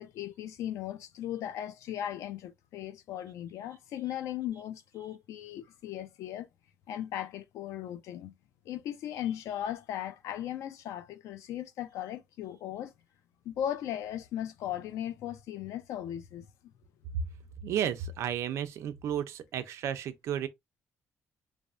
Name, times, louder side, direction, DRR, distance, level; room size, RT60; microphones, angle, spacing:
voice 1, 0.0-6.5 6.9-8.3 8.7-12.9 13.4-16.5, left 11 dB, 90° left, 0.4 m, -37 dB
voice 2, 17.6-20.5, right 9 dB, 70° right, 0.4 m, -33 dB
3.3 x 2.0 x 2.4 m
cardioid pair, 165°, 5 cm